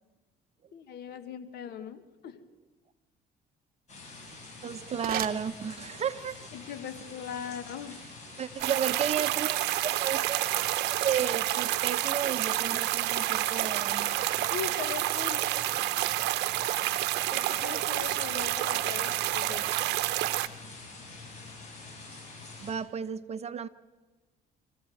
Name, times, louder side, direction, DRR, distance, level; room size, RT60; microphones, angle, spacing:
voice 1, 0.7-2.4 6.5-8.0 14.5-15.5 17.3-19.7, left 8 dB, 70° left, 1.7 m, -40 dB
sound 1, 3.9-22.7, left 3 dB, 45° left, 7.6 m, -46 dB
voice 2, 4.6-6.5 8.4-10.4 11.0-14.1 22.6-23.7, right 8 dB, 40° right, 1.0 m, -33 dB
sound 2, 4.8-6.2, right 11 dB, 60° right, 1.0 m, -39 dB
sound 3, 8.6-20.5, right 16 dB, 85° right, 0.8 m, -29 dB
26.0 x 14.5 x 7.8 m
cardioid pair, 110°, 17 cm